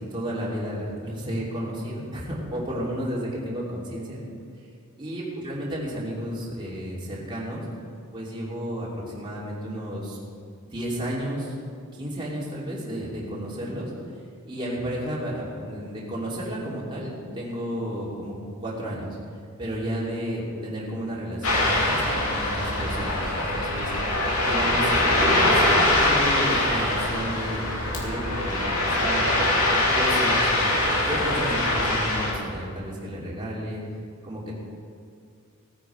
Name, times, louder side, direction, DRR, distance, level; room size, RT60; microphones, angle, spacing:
voice 1, 0.0-4.2 5.0-7.6 8.1-10.2 10.7-11.5 11.9-13.9 14.5-18.3 18.6-19.2 19.6-23.9 24.4-25.6 26.0-29.3 29.7-33.8 34.2-34.5, equal, 25° right, -6 dB, 2.9 m, -32 dB
Ocean, 21.4-32.3, left 1 dB, 75° left, 2.7 m, -23 dB
17.5 x 9.5 x 4.6 m, 2.2 s
head